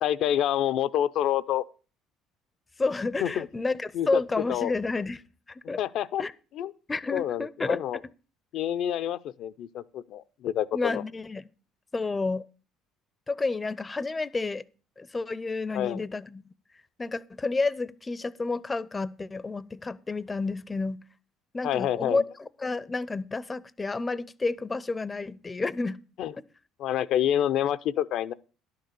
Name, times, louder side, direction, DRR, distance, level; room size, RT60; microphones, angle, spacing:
voice 1, 0.0-1.6 3.2-3.5 3.9-4.2 4.5-4.7 5.8-6.2 6.5-6.7 7.1-8.0 8.5-11.0 15.7-16.0 21.6-22.2 26.2-26.3 26.8-28.3, left 11 dB, 65° left, 0.6 m, -27 dB
voice 2, 2.8-5.2 5.5-5.8 6.2-6.3 6.9-8.0 10.7-11.5 11.9-12.5 13.3-14.6 15.0-16.5 17.0-21.0 21.5-26.0, left 3 dB, 20° left, 0.6 m, -30 dB
11.0 x 6.6 x 6.8 m
supercardioid pair, 95°, 0 cm